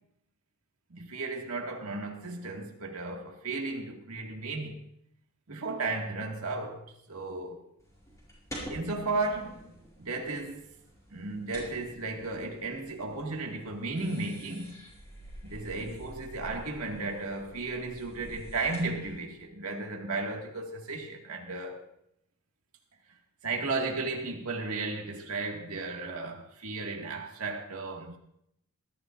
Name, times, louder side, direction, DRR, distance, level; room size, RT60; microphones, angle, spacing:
voice 1, 0.9-4.8 5.5-7.6 8.7-9.6 10.0-10.6 11.1-14.9 15.4-21.8 23.4-28.2, right 3 dB, 85° right, 1.9 m, -34 dB
sound 1, 7.8-19.2, equal, 15° left, 5.8 m, -48 dB
20.5 x 13.5 x 2.5 m
head